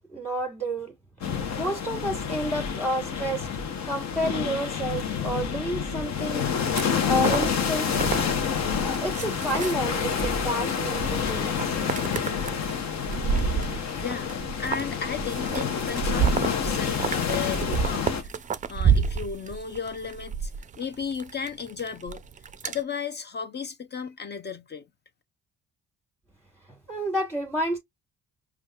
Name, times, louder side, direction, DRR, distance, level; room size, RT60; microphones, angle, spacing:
voice 1, 0.1-0.9 1.6-3.5 3.8-6.5 7.0-8.4 8.8-11.7 12.3-12.4 26.9-27.8, right 1 dB, 5° left, 1.4 m, -30 dB
sound 1, 1.2-18.2, left 7 dB, 65° left, 0.9 m, -28 dB
sound 2, 6.7-22.8, right 6 dB, 25° right, 0.4 m, -30 dB
voice 2, 13.9-20.5 20.8-22.2 22.6-24.9, left 6 dB, 35° left, 0.6 m, -35 dB
5.1 x 2.3 x 2.3 m
cardioid pair, 90°, 30 cm